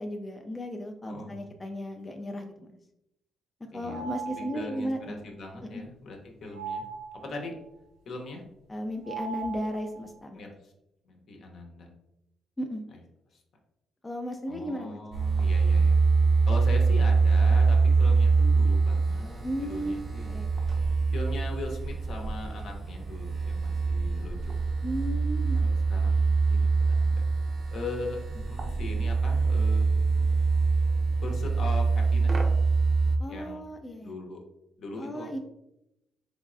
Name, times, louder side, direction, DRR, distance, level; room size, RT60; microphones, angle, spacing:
voice 1, 0.0-2.7 3.7-5.1 5.6-5.8 8.7-10.4 12.6-12.8 14.0-15.0 19.4-19.9 20.3-20.5 24.8-25.7 33.2-34.1 35.0-35.4, equal, 20° left, 3 dB, 0.3 m, -35 dB
voice 2, 1.0-1.5 3.7-6.9 7.2-7.5 8.1-8.4 10.3-10.7 11.1-11.9 13.3-13.4 14.5-16.0 16.5-20.4 21.1-24.5 25.5-27.1 27.7-30.3 31.2-32.4 33.3-33.6 34.0-34.4 34.8-35.4, left 2 dB, 65° left, 1 dB, 0.8 m, -40 dB
sound 1, 3.9-4.8 6.5-7.5 9.0-10.2, right 6 dB, 85° right, 0.5 m, -38 dB
sound 2, 15.1-33.2, right 4 dB, 40° right, 0.5 m, -24 dB
3.4 x 3.1 x 2.4 m, 0.85 s
cardioid pair, 90°, 0 cm